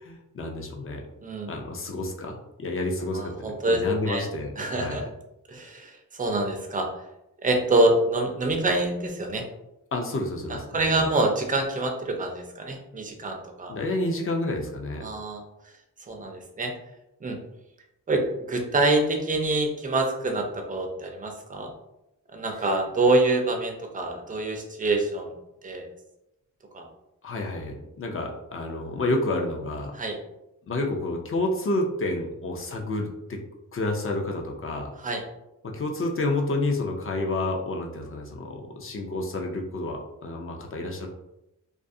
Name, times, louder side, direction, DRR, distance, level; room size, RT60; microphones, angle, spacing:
voice 1, 0.0-1.1 1.5-5.0 9.9-11.1 13.7-15.0 27.2-30.0 30.7-33.4 33.7-34.9 35.6-41.1, left 2 dB, 40° left, 2 dB, 0.4 m, -29 dB
voice 2, 1.2-1.5 3.1-4.3 4.6-5.1 5.5-7.0 7.4-9.5 10.5-13.8 15.0-15.4 16.1-16.7 17.2-17.4 18.1-21.7 22.3-25.3 25.6-25.9 26.7-26.9 29.9-30.2 35.0-35.2, right 2 dB, 25° right, 3 dB, 0.4 m, -26 dB
2.4 x 2.3 x 2.5 m, 0.88 s
wide cardioid pair, 140°, 33 cm